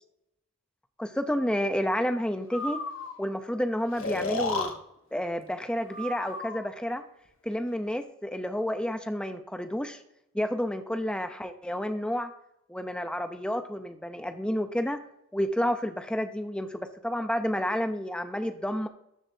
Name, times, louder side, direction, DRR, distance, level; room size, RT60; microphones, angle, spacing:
voice 1, 1.0-2.8 3.2-4.7 5.1-7.0 7.4-10.0 10.3-12.3 12.7-15.0 15.3-18.9, equal, 5° left, 7 dB, 0.6 m, -30 dB
Breathing, 2.5-3.2 4.0-4.7 5.9-6.7, left 2 dB, 60° left, 1.3 m, -32 dB
13.0 x 7.3 x 2.8 m, 0.78 s
head